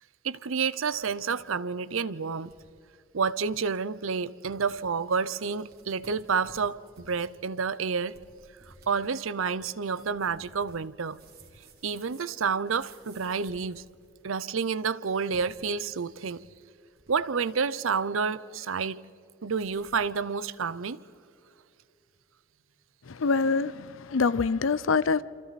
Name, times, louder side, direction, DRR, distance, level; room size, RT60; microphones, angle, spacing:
voice 1, 0.2-2.5 3.1-8.1 8.9-11.2 11.8-13.8 14.2-16.4 17.1-19.0 19.4-21.0, right 5 dB, 90° right, 0.7 m, -29 dB
sound 1, 0.6-1.5 1.8-1.9 2.5-2.7 3.1-3.2 3.4-3.7 4.2-4.3 4.5-5.0 5.5-14.3 15.2-16.5 16.8-17.8 19.5-20.1, right 2 dB, 50° right, 3.6 m, -57 dB
voice 2, 23.1-25.2, left 4 dB, 80° left, 0.6 m, -25 dB
28.0 x 27.5 x 4.2 m
head